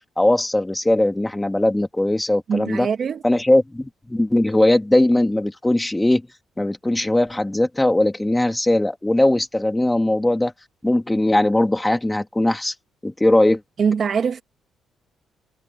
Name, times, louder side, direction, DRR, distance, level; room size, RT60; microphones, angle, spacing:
voice 1, 0.2-2.9 3.2-6.3 6.6-10.5 10.8-12.7 13.0-13.6, left 1 dB, 10° left, 2.6 m, -19 dB
voice 2, 2.5-3.2 13.8-14.4, right 6 dB, 50° right, 1.9 m, -22 dB
cardioid pair, 90°, 0 cm